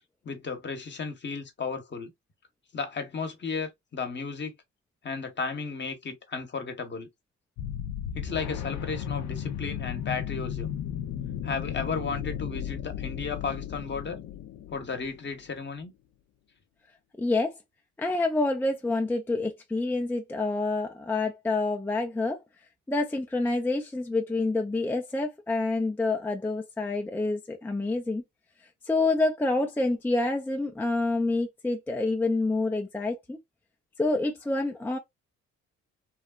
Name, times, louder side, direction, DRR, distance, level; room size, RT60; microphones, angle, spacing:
voice 1, 0.2-2.1 2.7-4.5 5.0-7.1 8.1-10.8 11.4-14.2 14.7-15.9, left 5 dB, 35° left, 0.9 m, -34 dB
sound 1, 7.6-15.3, left 9 dB, 70° left, 0.5 m, -35 dB
voice 2, 17.2-17.5 18.0-22.4 22.9-28.2 28.8-33.4 34.0-35.0, left 2 dB, 5° left, 0.4 m, -27 dB
3.1 x 2.2 x 2.2 m
cardioid pair, 90°, 30 cm